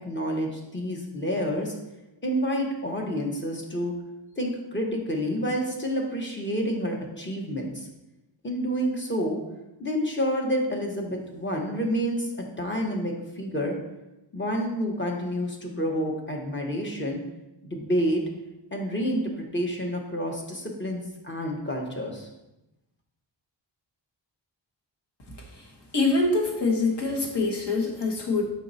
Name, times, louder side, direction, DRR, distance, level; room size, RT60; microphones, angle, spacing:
voice 1, 0.0-1.8 2.2-4.0 4.4-7.9 8.4-9.4 9.8-13.7 14.3-17.2 17.6-18.2 18.7-22.3, equal, 25° left, 0 dB, 0.9 m, -29 dB
voice 2, 25.9-28.4, left 3 dB, 60° left, -1 dB, 1.3 m, -24 dB
5.3 x 4.6 x 4.0 m, 0.96 s
wide cardioid pair, 160°, 46 cm